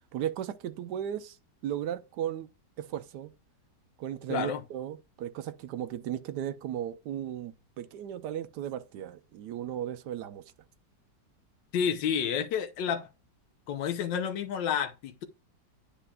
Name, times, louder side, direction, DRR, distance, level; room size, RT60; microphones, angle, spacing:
voice 1, 0.1-1.4 1.6-2.5 2.8-3.3 4.0-10.4, right 10 dB, 75° right, 1.1 m, -36 dB
voice 2, 4.3-4.6 11.7-13.1 13.7-15.2, left 8 dB, 80° left, 1.4 m, -30 dB
10.0 x 4.9 x 2.3 m
omnidirectional pair, 2.0 m